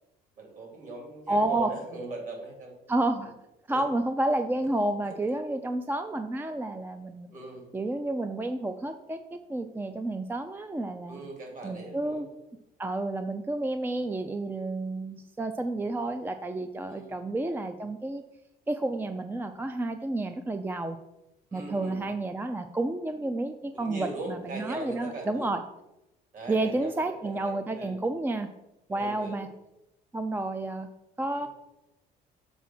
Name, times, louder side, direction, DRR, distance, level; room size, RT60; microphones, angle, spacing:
voice 1, 0.4-2.7 3.7-3.8 5.0-5.1 7.3-7.6 11.1-12.2 16.8-17.1 21.5-22.0 23.7-25.5 26.3-28.0 28.9-29.4 31.4-31.5, right 2 dB, 50° right, 1 dB, 2.9 m, -40 dB
voice 2, 1.3-1.7 2.9-3.3 3.7-7.3 7.7-11.2 11.6-12.3 12.8-18.2 18.7-21.0 21.5-25.6 26.5-28.5 28.9-29.5 30.1-30.9 31.2-31.5, right 2 dB, 10° right, 8 dB, 0.4 m, -30 dB
7.1 x 4.7 x 6.0 m, 0.92 s
cardioid pair, 110°, 17 cm